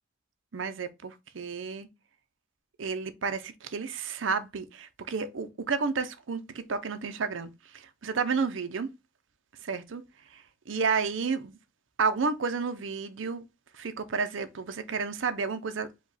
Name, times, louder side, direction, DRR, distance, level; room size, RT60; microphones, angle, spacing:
voice 1, 0.5-1.9 2.8-8.9 9.6-10.0 10.3-11.6 12.0-13.5 13.7-15.9, right 5 dB, 80° right, 0.6 m, -31 dB
4.9 x 2.3 x 4.0 m
head